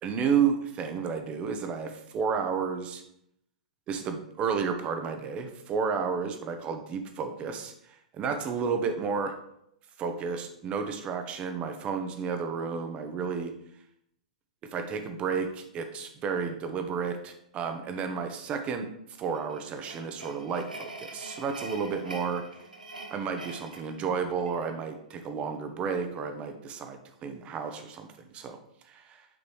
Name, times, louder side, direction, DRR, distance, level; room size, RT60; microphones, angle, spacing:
voice 1, 0.0-3.0 3.9-7.7 8.2-9.3 10.0-13.5 14.7-18.9 19.2-22.4 23.1-28.1 28.3-28.6 28.9-29.2, right 6 dB, 25° right, 7 dB, 1.0 m, -31 dB
sound 1, 19.2-24.7, right 2 dB, 85° right, 1.1 m, -44 dB
8.7 x 6.5 x 3.2 m, 0.75 s
figure-of-eight pair, 110°, 4 cm